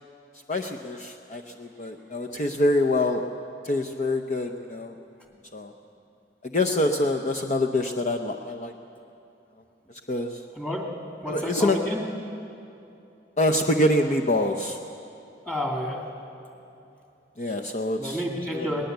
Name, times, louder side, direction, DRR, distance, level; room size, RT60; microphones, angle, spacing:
voice 1, 0.5-3.2 3.6-5.0 5.5-5.7 6.4-8.7 10.1-10.4 11.3-11.8 13.4-14.8 17.4-18.2 18.5-18.7, left 1 dB, 40° left, 3 dB, 0.8 m, -25 dB
voice 2, 10.5-10.8 11.2-12.0 15.5-16.1 18.0-18.9, equal, 5° left, 0 dB, 2.6 m, -29 dB
20.5 x 19.5 x 8.1 m, 2.8 s
head